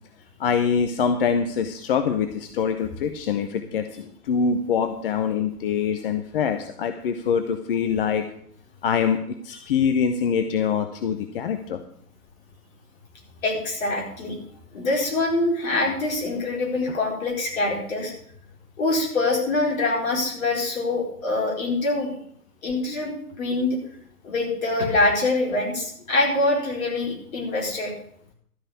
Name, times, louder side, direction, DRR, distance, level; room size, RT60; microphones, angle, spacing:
voice 1, 0.4-8.2 8.8-11.8, left 6 dB, 35° left, 8 dB, 0.8 m, -24 dB
voice 2, 13.4-14.4 14.7-18.1 18.8-22.1 22.6-23.1 23.4-23.8 24.2-27.9, left 2 dB, 60° left, -1 dB, 4.6 m, -24 dB
13.0 x 5.6 x 8.3 m, 0.66 s
figure-of-eight pair, 125°, 46 cm